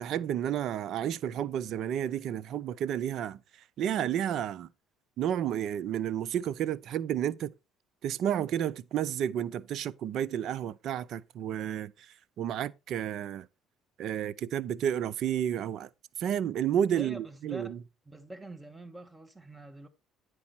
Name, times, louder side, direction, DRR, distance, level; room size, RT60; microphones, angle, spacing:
voice 1, 0.0-3.4 3.8-4.7 5.2-7.5 8.0-13.5 14.0-15.9 16.2-17.8, right 10 dB, 60° right, 0.5 m, -31 dB
voice 2, 16.9-17.7 18.0-19.9, right 1 dB, 15° right, 1.4 m, -45 dB
9.5 x 4.8 x 4.2 m
hypercardioid pair, 70°, 0 cm